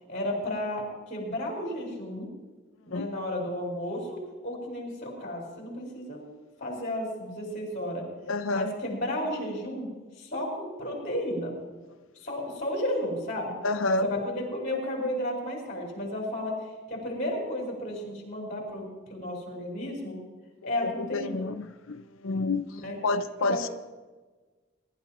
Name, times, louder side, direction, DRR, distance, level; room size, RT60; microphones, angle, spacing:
voice 1, 0.1-2.3 2.8-6.2 6.6-8.0 8.5-9.9 10.2-11.5 12.2-13.5 14.0-16.5 16.9-20.2 20.6-21.5 22.7-23.0 23.5-23.6, left 1 dB, 40° left, -2 dB, 5.2 m, -33 dB
voice 2, 8.3-8.7 13.6-14.1 20.6-23.7, left 3 dB, 85° left, 10 dB, 0.6 m, -29 dB
23.0 x 12.0 x 3.0 m, 1.3 s
head